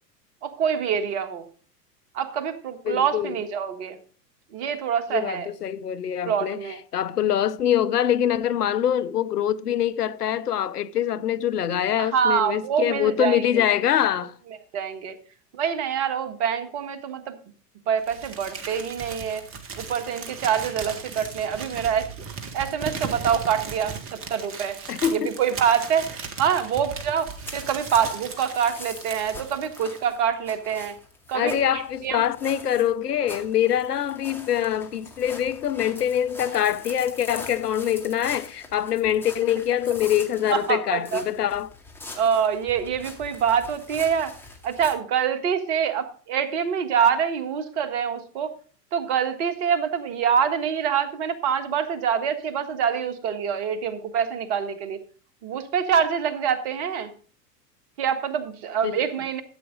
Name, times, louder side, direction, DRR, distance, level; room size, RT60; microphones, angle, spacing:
voice 1, 0.4-1.4 2.1-4.0 4.5-5.5 6.3-6.8 12.0-13.6 14.7-15.1 15.5-17.4 17.9-19.4 19.8-22.1 22.5-24.8 25.1-31.0 31.3-32.2 40.5-41.2 42.1-44.3 44.6-48.5 48.9-55.0 55.4-57.1 58.0-59.4, right 7 dB, 45° right, 1.6 m, -25 dB
voice 2, 2.9-3.4 5.1-6.6 6.9-14.3 24.9-25.3 31.3-41.7 58.8-59.0, left 10 dB, 70° left, 0.8 m, -24 dB
Crumpling crinkling, 18.0-30.1, right 5 dB, 25° right, 1.8 m, -37 dB
sound 1, 27.1-44.9, left 2 dB, 5° left, 2.3 m, -43 dB
13.0 x 8.3 x 3.8 m
figure-of-eight pair, 95°, 48 cm